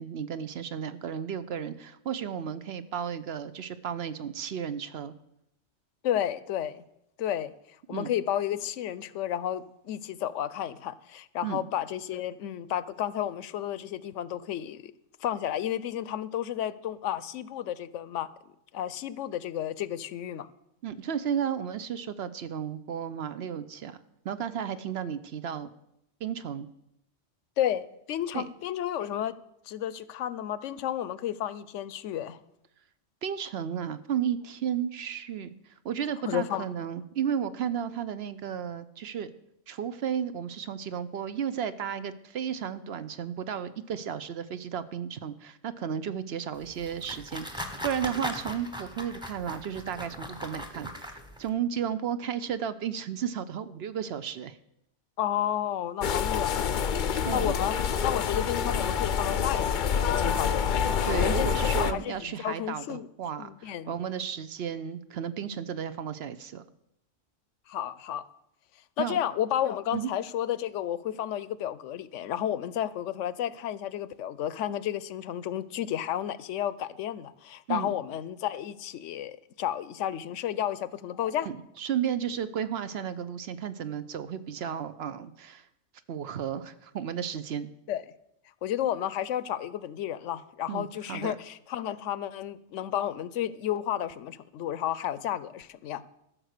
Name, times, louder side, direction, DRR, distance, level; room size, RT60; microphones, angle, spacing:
voice 1, 0.0-5.1 7.9-8.1 11.4-11.6 20.8-25.7 26.2-26.7 28.3-28.5 33.2-39.3 39.7-54.6 57.3-57.6 61.0-66.6 69.0-69.2 69.9-70.1 77.7-78.0 81.5-85.7 86.1-87.7 90.7-91.4, right 8 dB, 65° right, 13 dB, 0.8 m, -33 dB
voice 2, 6.0-6.8 7.2-7.5 7.9-14.9 15.2-18.3 18.7-20.5 27.6-29.4 29.7-32.4 36.2-36.7 55.2-56.8 57.3-57.8 58.0-60.7 61.1-63.1 63.4-63.9 67.7-68.3 69.0-81.5 87.9-88.0 88.6-96.0, left 11 dB, 85° left, 17 dB, 0.9 m, -32 dB
sound 1, 46.6-51.5, equal, 5° right, 1.0 m, -39 dB
sound 2, 56.0-61.9, left 7 dB, 55° left, 0.6 m, -27 dB
13.5 x 6.3 x 6.5 m, 0.79 s
omnidirectional pair, 1.2 m